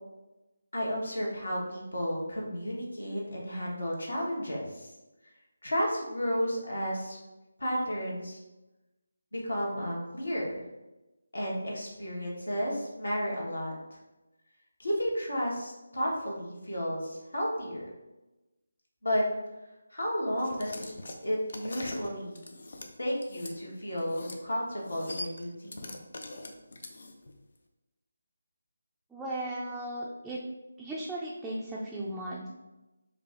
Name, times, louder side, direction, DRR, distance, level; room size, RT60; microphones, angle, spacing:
voice 1, 0.7-4.9 5.6-7.2 7.6-8.4 9.3-10.6 11.3-13.7 14.8-17.8 19.0-19.2 19.9-20.9 21.2-22.4 23.0-26.0, equal, 75° left, -3 dB, 1.4 m, -32 dB
sound 1, 20.4-23.6 24.0-24.4 24.7-27.3, left 2 dB, 55° left, 0.6 m, -43 dB
voice 2, 29.1-30.4 30.8-32.5, right 1 dB, 5° right, -7 dB, 0.4 m, -36 dB
5.0 x 2.7 x 3.4 m, 1.0 s
figure-of-eight pair, 155°, 0 cm